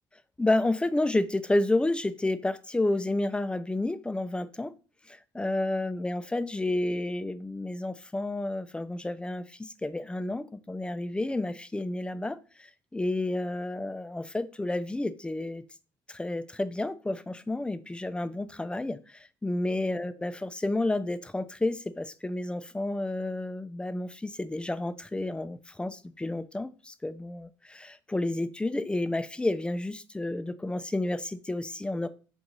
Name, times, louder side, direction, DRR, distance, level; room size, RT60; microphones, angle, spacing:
voice 1, 0.4-4.7 5.1-15.6 16.1-32.1, left 2 dB, 10° left, 0.6 m, -30 dB
7.8 x 2.7 x 5.4 m
supercardioid pair, 85°, 9 cm